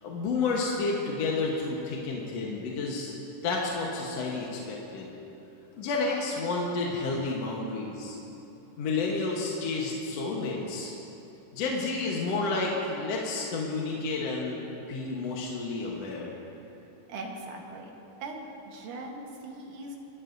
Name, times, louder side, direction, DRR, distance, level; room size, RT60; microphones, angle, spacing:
voice 1, 0.0-3.1 3.4-5.1 5.8-8.2 8.8-10.9 11.5-14.6 14.9-16.3, left 3 dB, 60° left, -2 dB, 2.1 m, -30 dB
voice 2, 17.1-20.0, right 2 dB, 75° right, 1 dB, 2.8 m, -40 dB
27.0 x 12.5 x 2.7 m, 3.0 s
omnidirectional pair, 3.7 m